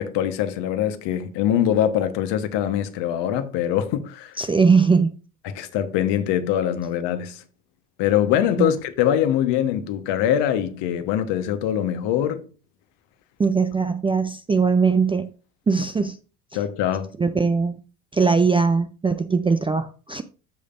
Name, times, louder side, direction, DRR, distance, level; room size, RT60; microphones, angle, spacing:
voice 1, 0.0-4.4 5.4-7.4 8.0-12.5 16.5-17.1, left 10 dB, 55° left, 1.2 m, -23 dB
voice 2, 4.4-5.1 8.6-8.7 13.4-15.3 15.7-16.2 17.2-17.7 18.1-20.2, right 5 dB, 10° right, 0.4 m, -20 dB
14.0 x 5.1 x 2.5 m
hypercardioid pair, 65°, 49 cm